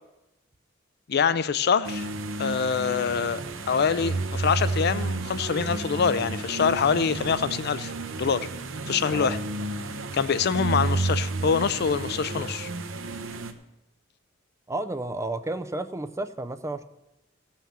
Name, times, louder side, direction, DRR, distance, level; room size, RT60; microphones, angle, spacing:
voice 1, 1.1-2.1 2.4-3.4 3.7-7.9 8.2-8.5 8.9-9.4 10.1-12.7, left 6 dB, 55° left, 15 dB, 0.5 m, -25 dB
sound 1, 1.8-13.5, right 2 dB, 80° right, 0.9 m, -31 dB
voice 2, 14.7-16.8, right 2 dB, 15° right, 10 dB, 0.5 m, -32 dB
16.0 x 5.8 x 7.3 m, 0.96 s
head